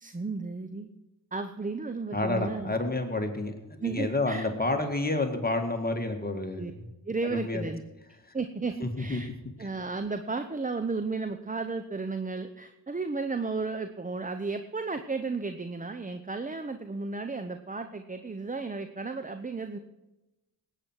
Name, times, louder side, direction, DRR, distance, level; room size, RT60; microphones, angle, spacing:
voice 1, 0.0-0.9 1.3-2.7 3.8-4.5 6.6-6.7 7.1-7.8 8.3-9.3 9.6-19.8, right 3 dB, 15° right, 9 dB, 0.8 m, -33 dB
voice 2, 2.1-6.9 7.3-7.7 8.8-9.2 9.6-9.7, left 2 dB, 20° left, 4 dB, 2.0 m, -29 dB
18.0 x 9.1 x 4.6 m, 1.0 s
supercardioid pair, 40°, 47 cm